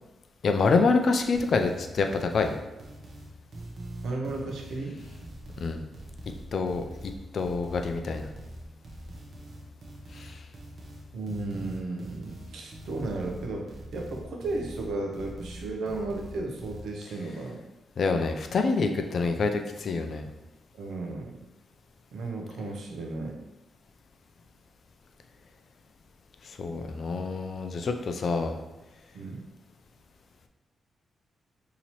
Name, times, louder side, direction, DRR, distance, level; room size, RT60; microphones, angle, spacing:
voice 1, 0.4-2.5 5.6-5.8 6.5-8.3 10.2-10.3 18.0-20.3 26.6-28.6, left 4 dB, 50° left, 6 dB, 0.3 m, -26 dB
sound 1, 1.3-16.8, right 1 dB, 45° right, 0.7 m, -43 dB
voice 2, 4.0-5.0 11.1-17.6 20.7-21.4 22.1-23.3 29.1-29.4, right 2 dB, 80° right, 1 dB, 0.6 m, -34 dB
4.1 x 2.8 x 3.0 m, 1.0 s
wide cardioid pair, 130°, 0 cm